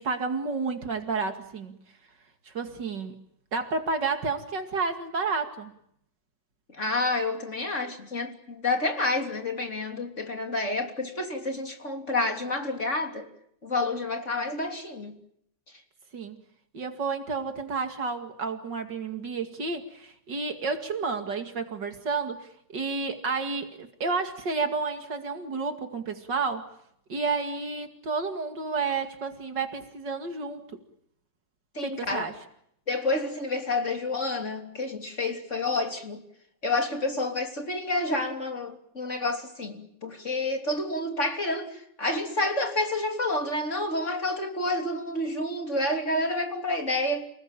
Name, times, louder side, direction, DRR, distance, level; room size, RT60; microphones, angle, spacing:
voice 1, 0.0-1.8 2.5-3.2 3.5-5.7 16.1-16.4 16.7-26.7 27.1-30.8 31.8-32.4, right 4 dB, 60° right, 2.8 m, -31 dB
voice 2, 6.7-13.3 13.6-15.1 31.8-32.2 32.9-36.2 36.6-47.2, left 2 dB, 35° left, 3.5 m, -29 dB
29.5 x 19.5 x 9.0 m
omnidirectional pair, 2.2 m